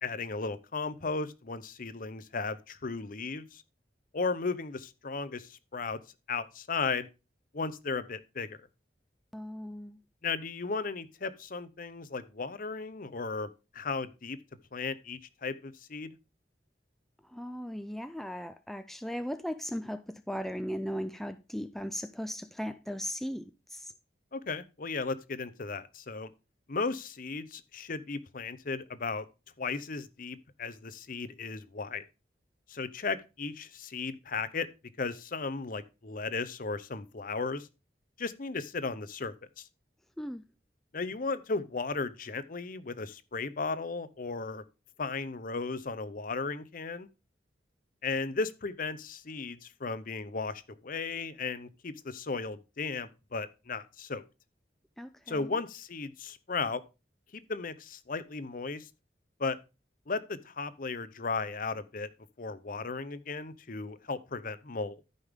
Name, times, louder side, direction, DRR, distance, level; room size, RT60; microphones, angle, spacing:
voice 1, 0.0-3.6 4.1-6.0 6.3-7.1 7.5-8.6 10.2-14.4 14.7-16.1 24.3-26.3 26.7-29.2 29.6-32.0 32.7-34.7 35.0-37.7 38.2-39.7 40.9-44.6 45.0-47.1 48.0-54.2 55.3-56.8 57.3-58.9 59.4-59.6 60.1-62.1 62.4-65.0, left 4 dB, 50° left, 0.8 m, -35 dB
voice 2, 9.3-10.0 17.3-23.9 40.2-40.4 55.0-55.6, equal, ahead, 0.4 m, -37 dB
13.5 x 5.5 x 3.6 m
head